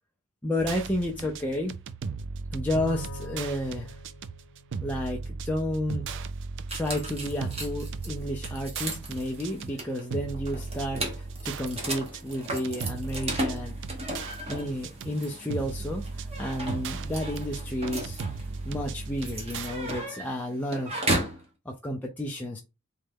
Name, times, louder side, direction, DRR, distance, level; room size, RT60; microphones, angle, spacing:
voice 1, 0.4-1.7 2.5-4.0 4.8-6.2 6.7-13.8 14.5-20.9 21.7-22.6, left 1 dB, 5° left, 0.5 m, -31 dB
sound 1, 0.6-20.0, right 4 dB, 55° right, 0.4 m, -37 dB
Bowed string instrument, 2.8-5.4, left 1 dB, 55° left, 0.6 m, -43 dB
sound 2, 6.7-21.4, right 1 dB, 30° right, 1.1 m, -35 dB
3.8 x 3.2 x 3.6 m
head